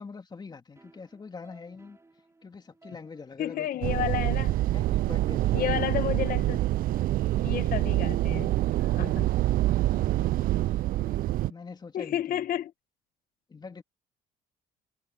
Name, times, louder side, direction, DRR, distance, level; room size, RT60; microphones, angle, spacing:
voice 1, 0.0-2.0 2.4-3.9 4.6-5.9 9.0-10.8 11.5-12.5 13.5-13.8, left 4 dB, 25° left, 2.6 m, -45 dB
sound 1, 0.8-11.7, right 3 dB, 15° right, 6.5 m, -60 dB
voice 2, 3.4-4.6 5.5-6.6 7.4-8.5 8.8-9.3 11.9-12.7, left 11 dB, 55° left, 1.1 m, -31 dB
sound 2, 3.8-11.5, right 15 dB, 60° right, 0.4 m, -26 dB
cardioid pair, 110°, 17 cm